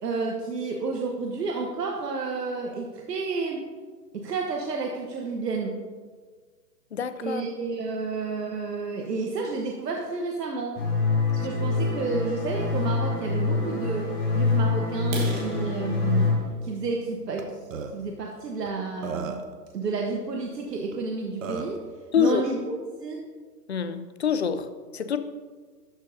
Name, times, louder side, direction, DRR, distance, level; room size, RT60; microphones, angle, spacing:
voice 1, 0.0-3.6 4.1-5.8 7.2-10.8 11.4-16.3 16.6-17.6 17.9-19.4 19.7-21.8 22.2-22.7 23.0-23.2, right 4 dB, 75° right, 0 dB, 1.2 m, -30 dB
voice 2, 6.9-7.4 22.1-22.4 23.7-24.6 24.9-25.2, left 7 dB, 45° left, 11 dB, 0.4 m, -25 dB
sound 1, 10.8-16.3, left 3 dB, 20° left, 2.7 m, -25 dB
sound 2, 15.0-18.8 19.3-19.5 19.9-20.0 20.5-20.6 20.9-21.0 21.5-21.6 21.8-22.3, right 2 dB, 25° right, 1.5 m, -40 dB
Burping eructation, 17.4-17.5 17.7-17.9 18.7-18.8 19.0-19.5 20.9-21.0 21.4-21.8, right 5 dB, 50° right, 0.9 m, -33 dB
12.5 x 6.3 x 2.7 m, 1.5 s
hypercardioid pair, 155°, 49 cm